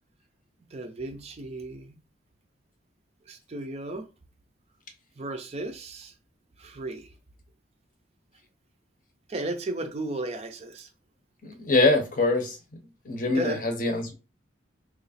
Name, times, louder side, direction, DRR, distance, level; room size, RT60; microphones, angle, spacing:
voice 1, 0.7-1.9 3.3-4.1 5.2-6.1 6.6-7.1 9.3-10.9 13.3-13.6, right 2 dB, 35° right, 0.4 m, -34 dB
voice 2, 11.4-12.6 13.1-14.1, left 2 dB, 45° left, 0.7 m, -24 dB
3.0 x 2.4 x 4.1 m
head